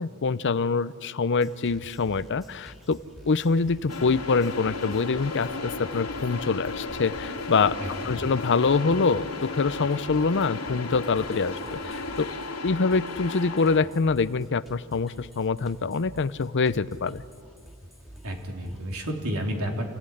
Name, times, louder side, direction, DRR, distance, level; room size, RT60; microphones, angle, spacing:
voice 1, 0.0-3.0 3.3-7.8 8.0-12.3 12.6-17.2, left 4 dB, 55° left, 16 dB, 0.6 m, -25 dB
sound 1, 1.3-19.1, right 1 dB, ahead, 2.3 m, -49 dB
sound 2, 3.8-12.1, equal, 25° right, 5.3 m, -52 dB
sound 3, 3.9-13.8, left 3 dB, 85° left, 2.7 m, -35 dB
voice 2, 7.8-8.2 18.2-19.9, equal, 70° right, 1 dB, 3.7 m, -31 dB
28.0 x 16.0 x 10.0 m, 2.3 s
head